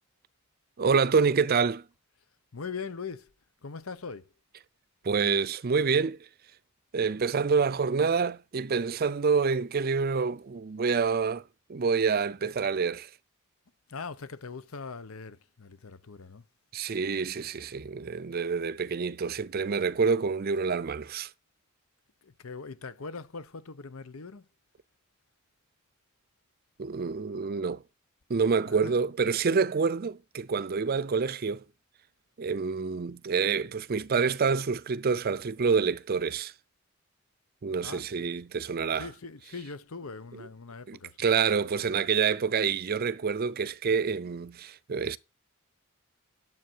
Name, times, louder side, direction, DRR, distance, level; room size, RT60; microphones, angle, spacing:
voice 1, 0.8-1.8 5.0-6.2 6.9-11.4 11.7-13.1 16.7-21.3 26.8-27.8 28.3-31.6 32.4-36.5 37.6-39.1 40.4-40.5 40.9-45.2, right 5 dB, 45° right, 0.5 m, -27 dB
voice 2, 2.5-3.3 3.6-4.3 13.9-16.4 22.2-24.5 28.7-28.9 37.8-38.3 39.0-41.8, left 4 dB, 80° left, 0.9 m, -41 dB
11.5 x 7.5 x 4.5 m
head